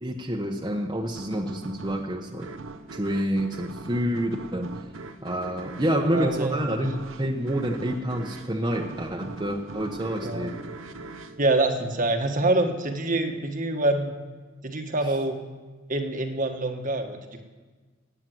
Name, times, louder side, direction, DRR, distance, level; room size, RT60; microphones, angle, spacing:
voice 1, 0.0-2.5 2.9-4.7 5.2-6.9 7.2-10.5, equal, 20° right, 0 dB, 1.1 m, -28 dB
sound 1, 1.1-12.4, right 3 dB, 80° right, 0.9 m, -41 dB
voice 2, 6.1-6.9 10.2-10.5 11.4-14.2 14.6-15.4 15.9-17.4, right 2 dB, 45° right, 5 dB, 1.4 m, -26 dB
18.0 x 8.9 x 7.8 m, 1.4 s
head